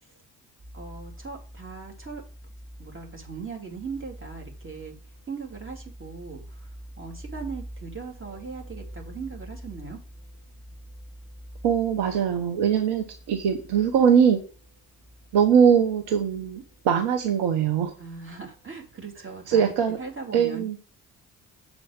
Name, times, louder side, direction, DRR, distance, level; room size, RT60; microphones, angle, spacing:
sound 1, 0.6-20.2, equal, 45° right, 2.7 m, -46 dB
voice 1, 0.7-2.2 2.8-4.9 5.3-6.7 7.0-10.0 18.0-19.7 20.0-20.7, right 5 dB, 25° right, 2 dB, 2.7 m, -39 dB
voice 2, 11.6-14.4 15.3-17.9 19.5-20.0 20.3-20.8, right 7 dB, 60° right, 5 dB, 1.1 m, -21 dB
7.1 x 4.4 x 5.0 m, 0.37 s
hypercardioid pair, 50°, 45 cm